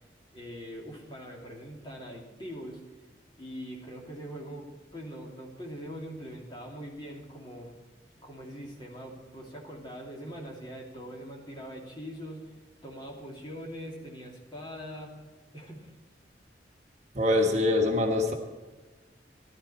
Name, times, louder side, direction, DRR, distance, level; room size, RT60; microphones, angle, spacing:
voice 1, 0.3-2.8 3.4-7.8 8.2-12.6 12.8-15.1 15.5-15.9, equal, 25° left, -2 dB, 2.8 m, -42 dB
voice 2, 17.1-18.3, left 2 dB, 40° right, 2 dB, 1.4 m, -24 dB
14.5 x 12.5 x 4.3 m, 1.3 s
head